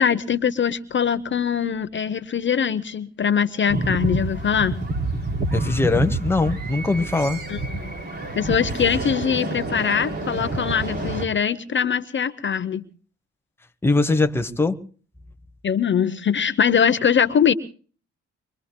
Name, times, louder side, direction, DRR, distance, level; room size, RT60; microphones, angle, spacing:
voice 1, 0.0-4.8 7.5-7.9 8.4-12.8 15.6-17.5, left 7 dB, 40° left, 0.8 m, -22 dB
sound 1, 3.7-11.2, right 2 dB, 35° right, 3.6 m, -28 dB
voice 2, 5.5-7.4 13.8-14.8, left 3 dB, 10° left, 1.0 m, -21 dB
24.5 x 24.0 x 2.2 m
cardioid pair, 90°, 30 cm